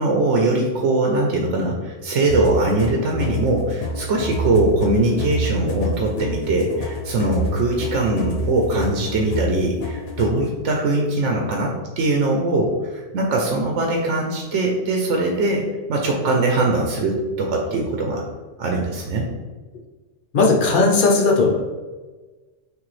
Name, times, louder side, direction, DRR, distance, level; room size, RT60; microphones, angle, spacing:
voice 1, 0.0-18.2 18.6-19.3, right 2 dB, 85° right, 0 dB, 1.0 m, -21 dB
sound 1, 2.3-10.5, left 1 dB, 85° left, 1.0 m, -28 dB
voice 2, 20.3-21.6, left 3 dB, 50° left, 0 dB, 0.8 m, -16 dB
6.1 x 2.6 x 3.2 m, 1.3 s
omnidirectional pair, 1.2 m